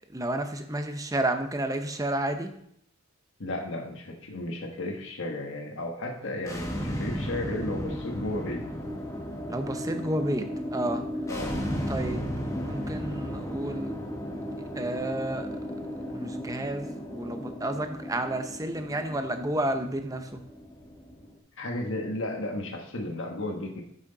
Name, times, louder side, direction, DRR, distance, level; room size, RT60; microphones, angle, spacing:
voice 1, 0.1-2.5 9.5-10.5 10.7-11.1 11.9-14.0 14.7-15.6 16.1-20.4, right 1 dB, 15° right, 7 dB, 0.7 m, -31 dB
voice 2, 3.4-8.6 11.3-11.5 21.6-23.8, left 1 dB, 65° left, 2 dB, 1.5 m, -34 dB
sound 1, 6.4-21.3, equal, 15° left, 1.2 m, -35 dB
9.4 x 6.3 x 4.0 m, 0.69 s
head